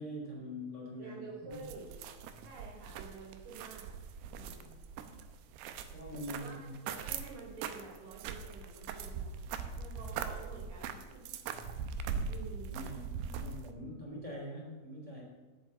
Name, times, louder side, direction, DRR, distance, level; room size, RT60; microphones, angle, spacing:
voice 1, 0.0-1.7 2.3-2.6 5.0-5.1 5.9-6.8 9.4-10.0 11.5-11.8 12.7-15.2, equal, 10° right, -3 dB, 2.8 m, -44 dB
voice 2, 1.0-1.9 2.4-3.9 4.3-4.8 6.3-9.3 9.8-11.6 12.3-12.8, right 4 dB, 60° right, -3 dB, 4.3 m, -49 dB
sound 1, 1.5-13.7, right 6 dB, 85° right, 2.8 m, -41 dB
8.1 x 7.8 x 8.5 m, 1.3 s
omnidirectional pair, 4.5 m